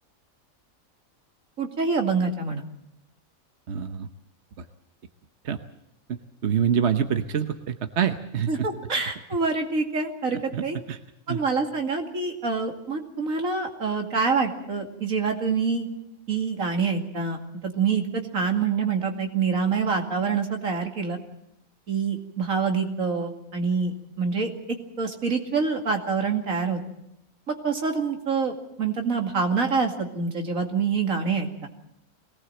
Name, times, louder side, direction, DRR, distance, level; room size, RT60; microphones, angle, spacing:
voice 1, 1.6-2.7 8.5-10.8 11.3-15.9 16.3-21.2 21.9-24.5 25.0-26.8 27.5-31.5, right 5 dB, 70° right, 3 dB, 2.7 m, -26 dB
voice 2, 3.7-4.1 5.4-5.6 6.1-8.5 10.5-11.0 11.3-11.4, right 8 dB, 55° right, 8 dB, 1.2 m, -26 dB
22.5 x 18.0 x 7.8 m, 0.83 s
omnidirectional pair, 1.5 m